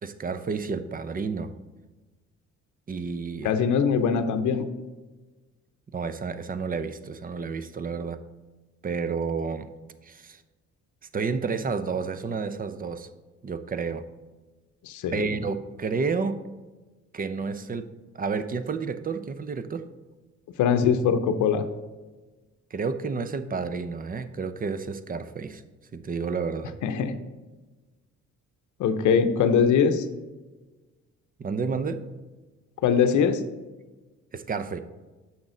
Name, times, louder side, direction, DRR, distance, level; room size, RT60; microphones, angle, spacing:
voice 1, 0.0-1.5 2.9-3.5 5.9-8.2 8.8-9.7 10.0-10.4 11.1-13.1 13.4-14.0 15.1-16.4 17.1-19.9 22.7-25.6 25.9-26.7 31.4-32.0 34.3-34.8, right 5 dB, 30° right, 12 dB, 0.6 m, -30 dB
voice 2, 3.4-4.7 14.8-15.3 20.6-21.7 26.8-27.1 28.8-30.0 32.8-33.4, left 6 dB, 75° left, 9 dB, 0.7 m, -22 dB
7.3 x 6.1 x 3.8 m, 1.2 s
cardioid pair, 90°, 30 cm